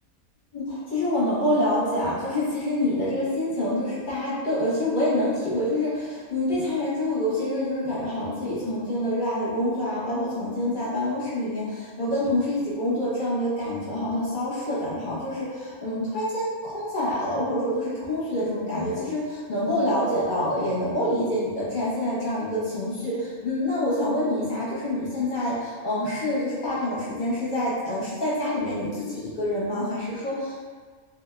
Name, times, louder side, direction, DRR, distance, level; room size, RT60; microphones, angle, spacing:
voice 1, 0.5-30.6, left 1 dB, 45° left, -9 dB, 1.1 m, -26 dB
3.5 x 2.7 x 2.2 m, 1.5 s
omnidirectional pair, 1.3 m